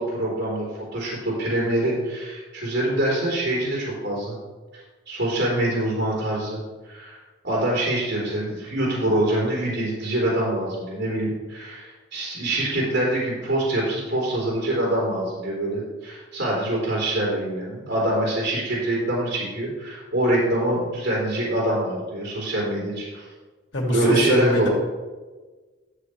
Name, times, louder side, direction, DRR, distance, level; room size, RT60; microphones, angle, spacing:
voice 1, 0.0-4.4 5.1-6.6 6.8-7.2 7.4-23.3 23.9-24.7, right 1 dB, 75° right, -5 dB, 3.6 m, -25 dB
voice 2, 23.7-24.7, left 1 dB, 85° left, -2 dB, 2.6 m, -22 dB
13.0 x 7.6 x 3.3 m, 1.3 s
head